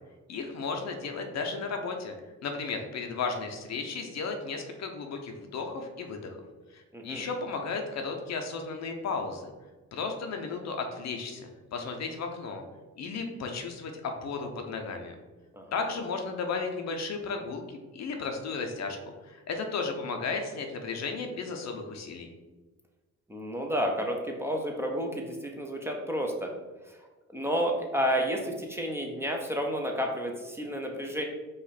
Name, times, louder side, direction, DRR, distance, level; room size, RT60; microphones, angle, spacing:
voice 1, 0.3-2.1 2.4-6.4 6.7-9.5 9.9-12.6 13.0-15.1 15.7-19.0 19.2-22.3, left 4 dB, 60° left, 4 dB, 0.8 m, -34 dB
voice 2, 6.9-7.2 15.5-15.8 23.3-26.5 26.9-27.0 27.3-31.2, equal, 10° right, 1 dB, 0.7 m, -31 dB
5.0 x 2.5 x 4.1 m, 1.2 s
cardioid pair, 90°, 30 cm